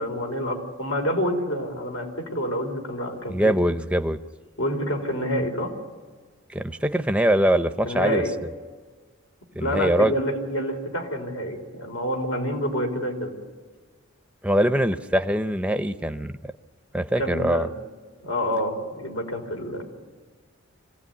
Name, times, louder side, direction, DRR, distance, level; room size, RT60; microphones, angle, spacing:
voice 1, 0.0-3.6 4.6-5.7 7.8-8.3 9.6-13.3 17.2-17.7 18.2-19.9, equal, 85° left, 3 dB, 4.5 m, -27 dB
voice 2, 3.3-4.2 6.5-8.2 9.6-10.1 14.4-16.3 16.9-17.7, right 1 dB, 5° right, 9 dB, 0.7 m, -22 dB
25.0 x 16.5 x 9.5 m, 1.5 s
head